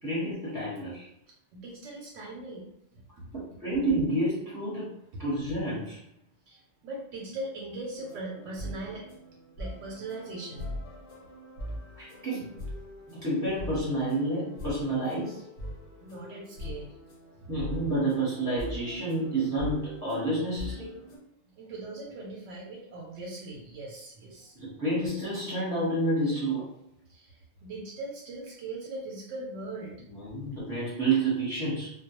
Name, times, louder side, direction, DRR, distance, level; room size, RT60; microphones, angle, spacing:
voice 1, 0.0-1.1 3.3-4.9 5.2-6.0 12.0-12.5 13.2-15.4 17.5-20.9 24.6-26.7 30.1-31.9, right 2 dB, 15° right, -10 dB, 0.8 m, -29 dB
voice 2, 1.5-2.6 2.9-3.4 6.5-9.1 9.6-10.7 16.0-17.0 17.4-17.5 21.6-24.5 27.1-29.9, right 2 dB, 90° right, -3 dB, 0.9 m, -40 dB
sound 1, 8.0-21.2, equal, 85° left, 1.2 m, -42 dB
2.2 x 2.1 x 2.9 m, 0.76 s
omnidirectional pair, 1.2 m